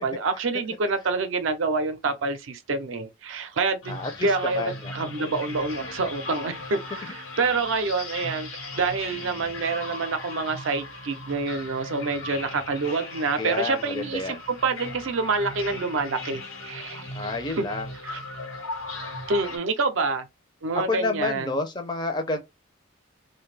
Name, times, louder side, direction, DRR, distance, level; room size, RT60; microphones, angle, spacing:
voice 1, 0.0-8.5 8.8-17.6 18.0-18.2 19.3-20.3 20.6-21.6, right 3 dB, 70° right, 0.5 m, -27 dB
sound 1, 3.8-19.6, left 2 dB, 80° left, 1.0 m, -38 dB
voice 2, 3.9-4.3 4.6-4.9 13.4-14.4 17.1-17.9 20.9-22.4, left 3 dB, 20° left, 0.4 m, -29 dB
2.5 x 2.2 x 3.2 m
head